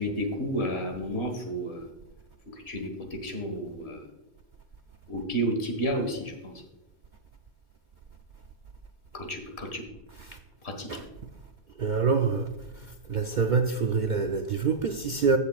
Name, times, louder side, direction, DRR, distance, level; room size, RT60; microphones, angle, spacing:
voice 1, 0.0-1.8 2.7-2.9 3.2-4.0 5.1-6.5 9.1-9.8 10.8-10.9, right 1 dB, 50° left, 1.8 m, -31 dB
voice 2, 11.8-12.5 13.1-15.4, right 5 dB, 85° right, 0.4 m, -26 dB
15.0 x 6.6 x 2.4 m
omnidirectional pair, 1.4 m